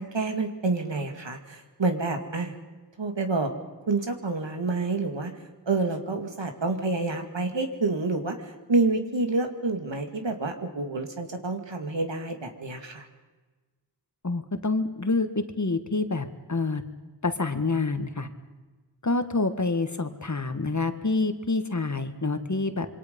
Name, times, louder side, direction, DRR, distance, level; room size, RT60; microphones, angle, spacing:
voice 1, 0.0-2.5 3.0-3.5 3.9-5.3 5.7-13.1, right 3 dB, 80° right, 5 dB, 2.4 m, -28 dB
voice 2, 14.2-16.8 17.2-18.3 19.0-22.9, left 3 dB, 40° left, 8 dB, 1.8 m, -27 dB
26.5 x 23.5 x 5.4 m, 1.3 s
wide cardioid pair, 50°, 44 cm